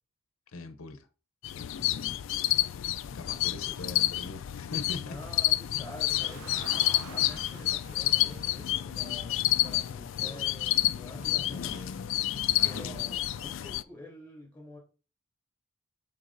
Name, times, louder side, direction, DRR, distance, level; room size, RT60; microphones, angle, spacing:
voice 1, 0.5-1.1 3.1-5.2 6.5-7.0 12.6-13.0, left 2 dB, 80° left, 0.7 m, -42 dB
sound 1, 1.4-13.8, left 15 dB, 60° left, 0.3 m, -29 dB
voice 2, 1.7-2.2 5.0-11.8 12.6-14.8, left 2 dB, 10° left, 3.2 m, -48 dB
sound 2, 5.2-5.9 6.2-6.7 7.1-7.9 8.2-8.7 9.2-9.9 10.2-10.7 11.2-13.2, equal, 30° right, 1.2 m, -51 dB
Car, 5.6-10.0, right 5 dB, 80° right, 0.6 m, -49 dB
12.0 x 3.9 x 2.6 m
head